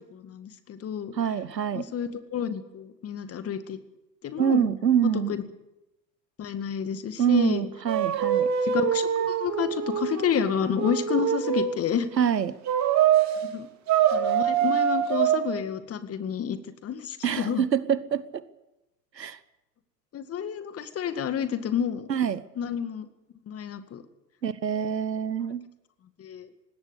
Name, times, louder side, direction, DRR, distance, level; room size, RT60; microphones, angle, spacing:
voice 1, 0.1-1.1 1.7-3.8 4.2-4.7 5.0-5.4 6.4-7.7 8.6-12.1 13.5-13.7 14.1-17.6 20.1-22.1 22.6-23.1 23.5-24.0 26.2-26.5, left 8 dB, 30° left, 11 dB, 2.0 m, -30 dB
voice 2, 1.1-1.9 4.4-5.4 7.2-8.5 12.2-12.5 17.2-18.2 19.2-19.4 22.1-22.4 24.4-25.6, right 8 dB, 80° right, 17 dB, 1.1 m, -25 dB
sound 1, 7.9-11.8 12.7-13.3 13.9-15.4, right 9 dB, 35° right, 2.5 m, -24 dB
19.5 x 16.5 x 8.2 m, 0.92 s
figure-of-eight pair, 80°, 50 cm